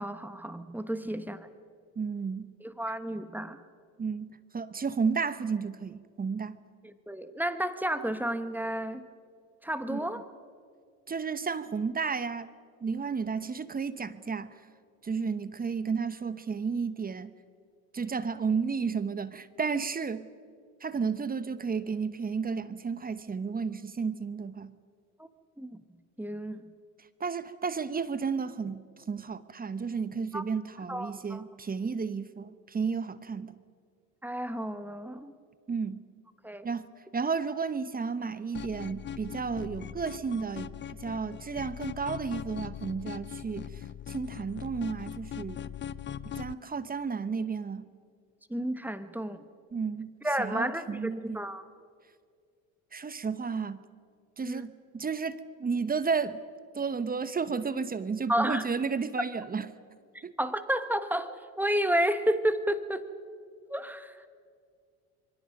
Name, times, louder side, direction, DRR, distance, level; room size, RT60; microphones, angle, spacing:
voice 1, 0.0-1.5 2.6-3.6 6.8-9.1 9.6-10.2 25.2-25.3 25.6-25.8 26.2-26.7 30.3-30.4 30.9-31.4 34.2-35.3 36.4-36.7 48.5-49.4 50.2-51.6 54.4-54.7 58.3-58.6 60.1-63.0 63.7-64.3, right 1 dB, 5° right, 10 dB, 1.3 m, -31 dB
voice 2, 2.0-2.5 4.0-6.6 9.9-10.1 11.1-12.5 12.8-14.5 15.0-17.3 17.9-20.3 20.8-24.7 27.2-33.5 35.7-36.0 36.6-36.9 37.1-45.6 46.4-47.9 49.7-50.1 50.4-51.4 52.9-53.8 54.4-56.4 56.7-59.7 60.2-60.3, right 5 dB, 20° right, 14 dB, 1.0 m, -32 dB
sound 1, 38.5-46.5, left 9 dB, 25° left, 0.5 m, -40 dB
27.5 x 23.5 x 5.3 m, 2.1 s
supercardioid pair, 85°, 42 cm